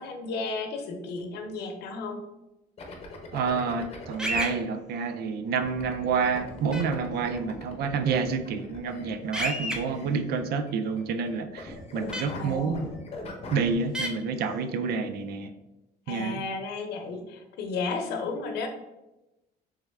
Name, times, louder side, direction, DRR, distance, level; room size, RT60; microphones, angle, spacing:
voice 1, 0.0-2.3 12.3-12.8 16.1-18.7, left 3 dB, 75° left, 5 dB, 0.7 m, -33 dB
sound 1, 2.8-4.4 5.6-11.3 11.6-13.7, left 2 dB, 35° left, 0.8 m, -41 dB
voice 2, 3.3-12.9 13.5-15.5 16.1-16.4, right 5 dB, 70° right, 9 dB, 0.4 m, -29 dB
sound 2, 4.2-4.5 6.7-6.8 9.3-9.8 12.1-12.2 13.9-14.1, equal, 5° right, 0.6 m, -29 dB
3.4 x 3.1 x 3.4 m, 0.98 s
cardioid pair, 110°, 17 cm